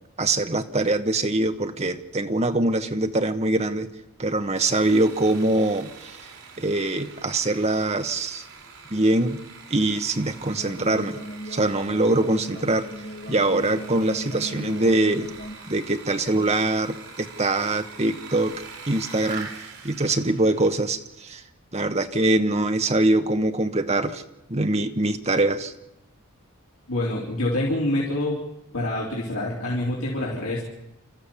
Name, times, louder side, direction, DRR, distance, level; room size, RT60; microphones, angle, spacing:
voice 1, 0.2-3.9 4.2-6.2 6.6-8.4 8.9-9.4 9.7-11.2 11.5-12.9 13.3-15.3 15.7-21.4 21.7-24.2 24.5-25.7, right 2 dB, 30° right, 7 dB, 1.1 m, -23 dB
Sawing, 4.6-21.0, right 5 dB, 80° right, 3.8 m, -44 dB
sound 1, 10.6-15.6, equal, 45° left, 1.5 m, -38 dB
voice 2, 26.9-28.4 28.7-30.6, left 1 dB, 75° left, -5 dB, 4.0 m, -26 dB
30.0 x 13.5 x 7.2 m, 0.90 s
head